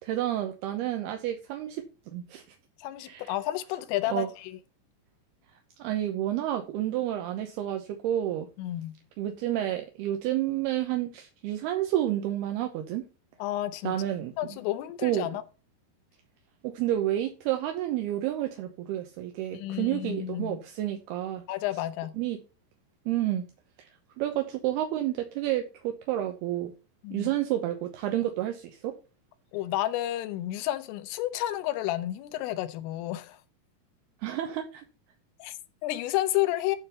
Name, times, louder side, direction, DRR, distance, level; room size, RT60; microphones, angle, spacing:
voice 1, 0.0-1.8 2.1-2.4 3.0-3.3 4.1-4.3 5.8-8.5 9.2-13.0 13.8-14.3 15.0-15.3 16.6-21.4 22.2-22.4 23.1-23.5 24.2-26.7 27.1-28.9 34.2-34.8, right 13 dB, 75° right, 2.4 m, -30 dB
voice 2, 2.8-4.6 8.6-8.9 13.4-14.0 14.4-15.4 19.5-20.6 21.5-22.1 27.0-27.3 29.5-33.4 35.4-36.8, left 14 dB, 90° left, 3.5 m, -31 dB
11.5 x 4.0 x 6.7 m
omnidirectional pair, 5.7 m